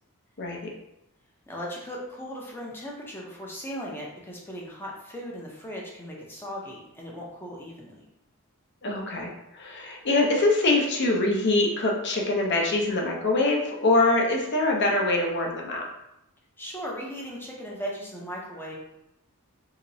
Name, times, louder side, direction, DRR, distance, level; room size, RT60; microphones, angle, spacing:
voice 1, 0.4-0.7 8.8-15.8, left 2 dB, 50° left, 0 dB, 0.6 m, -24 dB
voice 2, 1.5-8.0 16.6-18.7, equal, 10° left, -3 dB, 0.5 m, -37 dB
3.0 x 2.8 x 2.6 m, 0.87 s
head